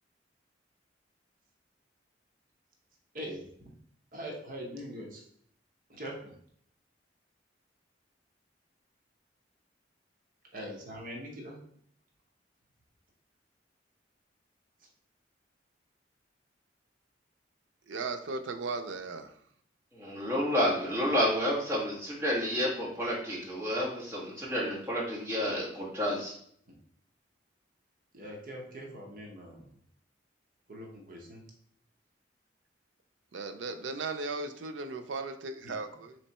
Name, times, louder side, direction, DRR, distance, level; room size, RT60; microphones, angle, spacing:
voice 1, 3.1-3.7 4.1-5.2 5.9-6.3 10.5-11.6 26.7-26.8 28.1-29.8 30.7-31.4 35.6-35.8, equal, 45° right, 0 dB, 0.8 m, -42 dB
voice 2, 17.9-19.3 33.3-36.2, right 3 dB, 80° right, 7 dB, 0.5 m, -36 dB
voice 3, 19.9-26.3, equal, 15° right, -6 dB, 1.4 m, -30 dB
3.6 x 3.2 x 4.1 m, 0.65 s
head